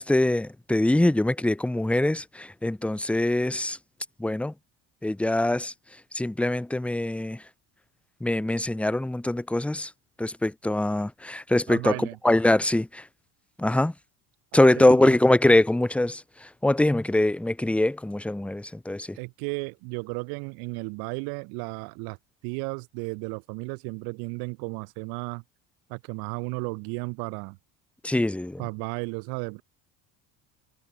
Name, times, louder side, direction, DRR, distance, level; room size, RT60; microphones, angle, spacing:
voice 1, 0.0-3.8 4.2-4.5 5.0-5.7 6.1-7.4 8.2-9.9 10.2-11.9 12.2-13.0 13.6-13.9 14.5-19.2 28.0-28.6, left 1 dB, 5° left, 1.0 m, -23 dB
voice 2, 11.7-12.2 14.5-15.2 19.1-22.2 22.4-25.4 25.9-27.6 28.6-29.6, right 36 dB, 80° right, 4.4 m, -34 dB
cardioid pair, 125°, 36 cm